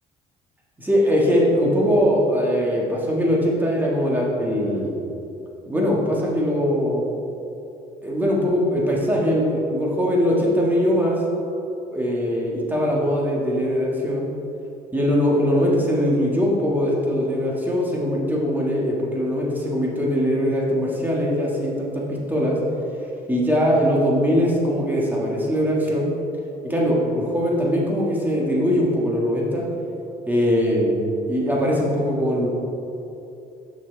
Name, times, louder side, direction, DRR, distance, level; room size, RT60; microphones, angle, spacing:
voice 1, 0.8-5.0 5.7-7.0 8.0-11.2 11.9-14.3 14.9-22.6 23.3-26.1 26.6-29.6 30.3-32.5, equal, 10° right, -4 dB, 1.7 m, -21 dB
6.2 x 6.1 x 4.5 m, 2.8 s
cardioid pair, 110°, 17 cm